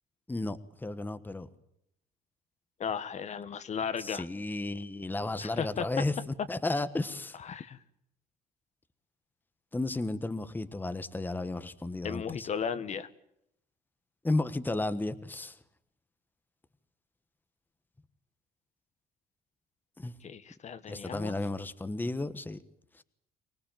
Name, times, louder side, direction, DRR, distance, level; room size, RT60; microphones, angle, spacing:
voice 1, 0.3-1.5 4.0-6.1 6.5-7.4 9.7-12.5 14.2-15.6 20.0-20.1 20.9-22.6 23.0-23.1, left 2 dB, 10° left, 12 dB, 1.3 m, -33 dB
voice 2, 2.8-4.2 5.4-5.8 7.3-7.8 12.0-13.1 20.2-21.3, left 7 dB, 45° left, 12 dB, 1.4 m, -35 dB
24.5 x 19.5 x 9.1 m, 0.77 s
cardioid pair, 110°, 17 cm